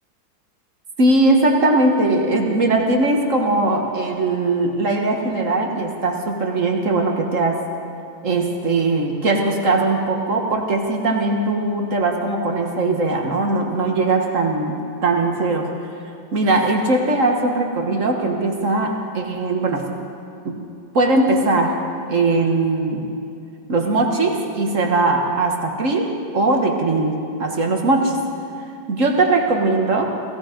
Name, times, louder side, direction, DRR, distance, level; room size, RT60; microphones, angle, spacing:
voice 1, 1.0-7.7 8.2-15.8 16.3-19.8 20.4-20.7 20.9-23.1 23.7-28.2 28.9-30.2, right 2 dB, 45° right, 2 dB, 1.4 m, -20 dB
17.0 x 16.5 x 5.1 m, 2.6 s
omnidirectional pair, 2.2 m